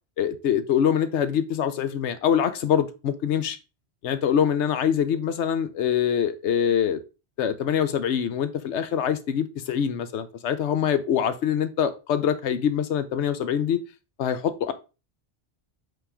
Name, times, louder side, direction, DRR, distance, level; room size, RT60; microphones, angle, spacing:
voice 1, 0.2-3.6 4.0-7.0 7.4-13.8 14.2-14.7, left 8 dB, 85° left, 1.0 m, -24 dB
5.7 x 3.7 x 4.8 m
omnidirectional pair, 1.1 m